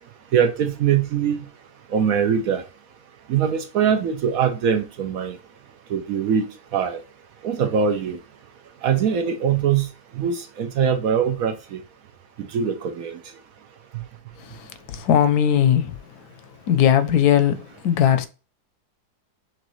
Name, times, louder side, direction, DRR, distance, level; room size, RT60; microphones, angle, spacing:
voice 1, 0.3-1.4 1.9-2.6 3.3-5.4 5.9-6.5 6.7-7.0 7.4-8.2 8.8-9.9 10.2-11.8 12.4-13.2, right 7 dB, 65° right, 1.0 m, -22 dB
voice 2, 14.5-15.9 16.7-18.3, left 9 dB, 80° left, 1.1 m, -19 dB
6.2 x 2.5 x 3.0 m
omnidirectional pair, 1.7 m